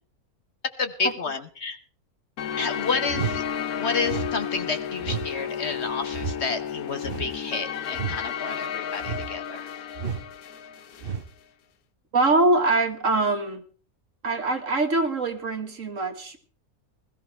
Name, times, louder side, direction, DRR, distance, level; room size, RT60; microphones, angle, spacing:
voice 1, 0.8-1.8 2.5-3.4 3.7-10.0, left 4 dB, 50° left, 9 dB, 1.3 m, -30 dB
sound 1, 2.4-11.2, left 8 dB, 75° left, 1.4 m, -32 dB
sound 2, 3.1-3.4 4.0-4.3 5.0-5.3 6.1-6.4 7.0-7.4 7.9-8.2 9.0-9.3 9.9-10.3 11.0-11.3, right 6 dB, 45° right, 1.0 m, -31 dB
voice 2, 12.1-13.6 14.2-16.4, right 2 dB, 60° right, 6 dB, 2.0 m, -23 dB
20.5 x 14.5 x 3.3 m, 0.39 s
omnidirectional pair, 1.6 m